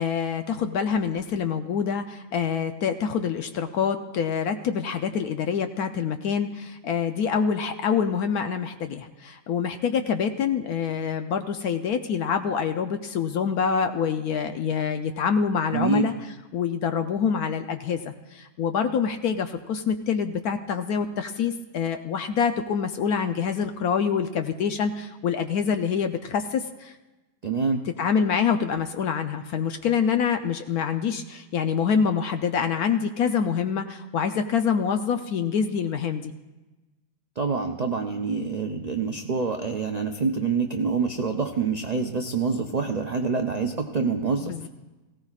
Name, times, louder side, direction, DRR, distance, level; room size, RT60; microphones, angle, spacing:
voice 1, 0.0-16.1 16.5-26.9 28.0-36.3 44.4-44.7, left 6 dB, 70° left, 7 dB, 1.1 m, -26 dB
voice 2, 15.7-16.1 27.4-27.9 37.4-44.5, right 5 dB, 75° right, 4 dB, 0.3 m, -26 dB
18.0 x 16.5 x 2.4 m, 1.1 s
omnidirectional pair, 1.7 m